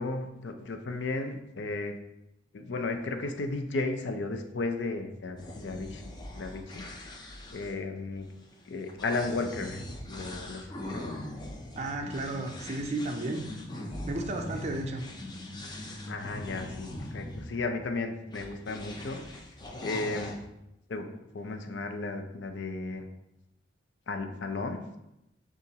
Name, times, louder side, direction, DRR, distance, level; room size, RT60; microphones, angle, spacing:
voice 1, 0.0-1.9 2.5-6.0 6.4-8.3 8.7-9.8 10.1-11.1 16.1-19.2 19.8-20.4 20.9-23.1 24.1-25.0, left 3 dB, 75° left, 6 dB, 0.5 m, -34 dB
sound 1, 5.4-17.5 18.3-20.4, left 1 dB, 25° left, 0.5 m, -41 dB
voice 2, 11.8-13.5 14.1-15.1, right 2 dB, 35° right, 2 dB, 0.4 m, -33 dB
6.6 x 2.5 x 2.8 m, 0.85 s
head